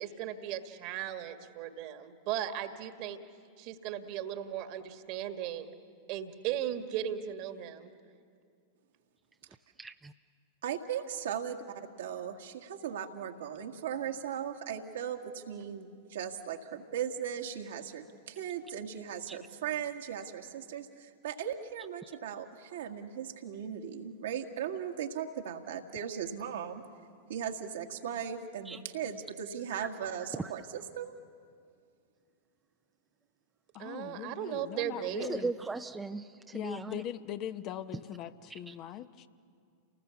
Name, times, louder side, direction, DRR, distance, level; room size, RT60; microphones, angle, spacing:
voice 1, 0.0-3.2 3.6-5.7 6.1-7.9 33.8-35.3, right 10 dB, 50° right, 8 dB, 1.8 m, -37 dB
voice 2, 9.8-10.1 19.3-19.4 28.7-28.8 30.4-30.5 35.2-37.0 38.7-38.8, right 3 dB, 10° right, 6 dB, 0.7 m, -38 dB
voice 3, 10.6-11.6 12.0-26.8 27.3-31.1, right 8 dB, 70° right, 3 dB, 1.8 m, -38 dB
voice 4, 33.7-35.5 36.5-39.3, left 11 dB, 40° left, 10 dB, 0.9 m, -41 dB
29.5 x 19.5 x 7.2 m, 2.3 s
hypercardioid pair, 95°, 0 cm